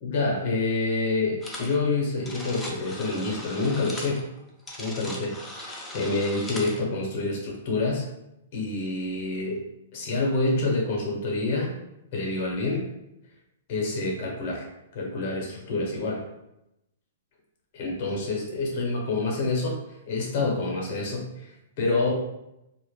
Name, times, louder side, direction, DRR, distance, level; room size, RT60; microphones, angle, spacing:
voice 1, 0.0-4.3 4.8-8.1 8.5-9.6 9.9-11.8 12.1-12.9 13.7-14.7 14.9-16.2 17.7-19.8 20.1-22.1, left 3 dB, 45° left, -1 dB, 0.8 m, -27 dB
sound 1, 1.4-1.8 2.0-6.8, left 1 dB, 10° left, 0.4 m, -39 dB
2.2 x 2.0 x 3.0 m, 0.88 s
hypercardioid pair, 155°, 0 cm